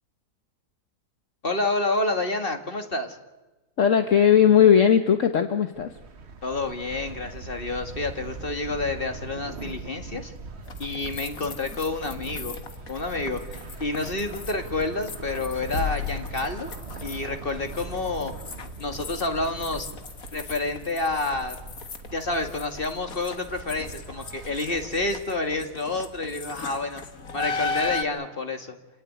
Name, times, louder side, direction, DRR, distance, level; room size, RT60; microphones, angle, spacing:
voice 1, 1.4-3.2 6.4-10.3 10.8-12.6 12.9-13.4 13.8-16.7 17.0-18.3 18.8-19.9 20.3-21.6 22.1-27.0 27.3-28.8, left 2 dB, 40° left, 6 dB, 2.0 m, -29 dB
voice 2, 3.8-5.9, left 8 dB, 65° left, 7 dB, 1.5 m, -18 dB
sound 1, 5.7-25.2, right 4 dB, 50° right, 1.4 m, -41 dB
sound 2, 10.7-28.0, left 4 dB, 85° left, 2.1 m, -37 dB
27.5 x 17.5 x 9.4 m, 1.1 s
omnidirectional pair, 1.4 m